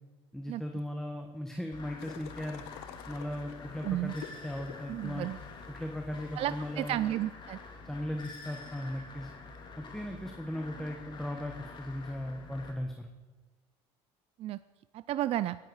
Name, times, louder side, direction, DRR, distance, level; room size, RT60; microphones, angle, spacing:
voice 1, 0.3-2.6 3.1-5.3 5.7-7.0 7.8-9.3 9.8-13.1, left 1 dB, 5° left, 3 dB, 1.4 m, -37 dB
sound 1, 1.7-12.7, left 4 dB, 35° left, 2.6 m, -47 dB
sound 2, 2.0-7.1, left 11 dB, 90° left, 0.9 m, -51 dB
voice 2, 3.8-4.1 4.9-5.4 6.4-7.6 14.4-14.6 14.9-15.6, right 13 dB, 50° right, 15 dB, 0.4 m, -32 dB
18.5 x 10.5 x 4.8 m, 1.3 s
supercardioid pair, 95°, 13 cm